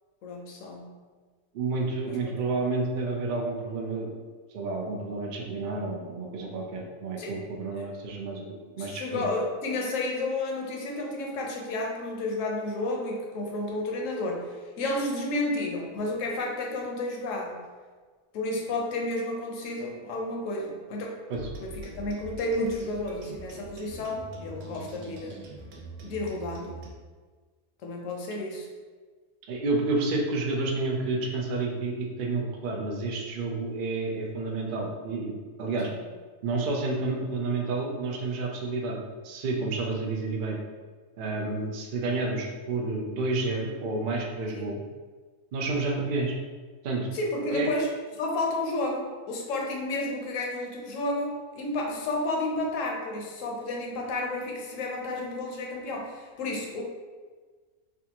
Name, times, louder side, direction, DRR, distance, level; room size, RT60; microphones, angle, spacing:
voice 1, 0.2-1.0 2.1-2.5 7.2-7.3 7.7-7.8 8.8-17.6 18.3-21.1 21.6-25.5 26.0-26.9 27.8-28.7 35.9-36.0 44.5-44.6 47.1-47.9 48.2-56.8, left 2 dB, 70° left, 0 dB, 1.0 m, -31 dB
voice 2, 1.5-4.1 4.5-9.3 21.3-21.4 29.5-35.3 35.6-35.9 36.4-39.0 39.2-40.6 41.2-44.8 45.5-46.3 46.8-47.1 47.5-47.7, right 3 dB, 70° right, -1 dB, 0.4 m, -30 dB
sound 1, 21.3-26.9, right 1 dB, 90° right, 1.0 m, -43 dB
3.4 x 2.3 x 2.8 m, 1.4 s
omnidirectional pair, 1.4 m